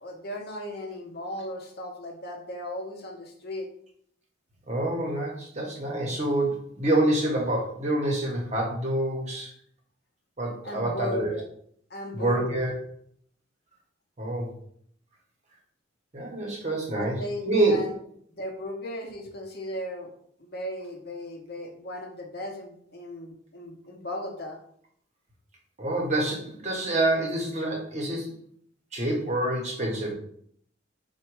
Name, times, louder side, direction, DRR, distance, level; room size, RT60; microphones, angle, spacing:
voice 1, 0.0-3.7 10.6-11.4 11.9-12.7 16.9-17.9 18.3-20.1 20.4-24.6, left 1 dB, 50° left, 2 dB, 0.8 m, -36 dB
voice 2, 4.7-9.5 10.4-11.4 12.1-12.8 14.2-14.5 16.1-17.7 25.8-28.3 28.9-30.1, right 1 dB, 35° right, 0 dB, 0.9 m, -27 dB
4.0 x 2.2 x 4.6 m, 0.66 s
head